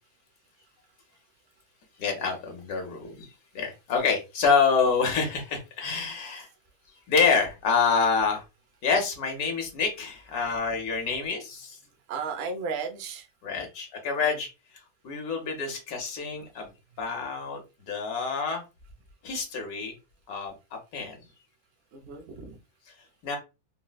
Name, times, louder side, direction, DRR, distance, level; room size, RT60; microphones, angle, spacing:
voice 1, 2.0-3.3 3.5-6.5 7.1-8.4 8.8-11.8 13.4-14.5 15.0-16.7 17.0-17.6 17.9-18.6 19.2-19.9 20.3-20.5 20.9-21.2 23.2-23.4, left 5 dB, 75° left, 1.3 m, -27 dB
voice 2, 11.8-13.3 13.6-13.7 14.2-14.4 21.9-22.6, right 5 dB, 65° right, 0.6 m, -36 dB
4.0 x 2.1 x 2.2 m
omnidirectional pair, 1.7 m